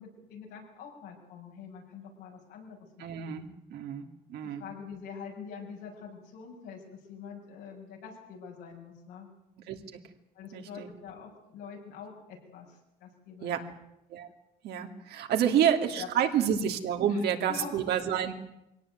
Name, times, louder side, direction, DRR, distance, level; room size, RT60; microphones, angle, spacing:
voice 1, 0.0-3.3 4.4-6.8 7.1-9.3 10.4-13.7 15.4-15.7 16.0-16.6 17.1-17.7, left 6 dB, 85° left, 0 dB, 7.3 m, -45 dB
voice 2, 3.0-4.6 9.7-9.8 10.5-10.9 13.4-13.6 14.1-14.3 14.6-18.3, right 9 dB, 75° right, 5 dB, 2.7 m, -29 dB
23.0 x 17.5 x 9.3 m, 0.87 s
cardioid pair, 110°, 17 cm